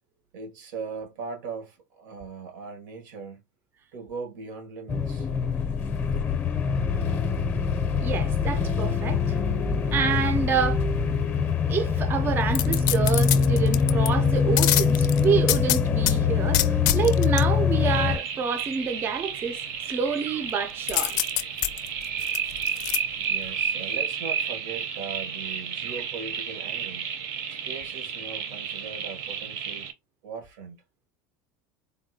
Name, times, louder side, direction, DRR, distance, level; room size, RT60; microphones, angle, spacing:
voice 1, 0.3-3.4 3.9-5.3 23.1-27.1 27.5-29.9 30.2-30.8, right 5 dB, 85° right, 1.2 m, -39 dB
sound 1, 4.9-18.2, left 6 dB, 20° left, 0.6 m, -24 dB
voice 2, 8.0-9.4 9.9-10.8 11.7-19.6 19.9-21.2, right 6 dB, 25° right, 0.4 m, -28 dB
sound 2, 12.5-14.1 14.6-16.2 16.5-17.4 20.9-23.0 23.4-23.5, left 15 dB, 85° left, 0.4 m, -25 dB
sound 3, 17.8-29.9, right 7 dB, 60° right, 0.8 m, -32 dB
3.6 x 2.2 x 2.7 m
cardioid pair, 150°, 10 cm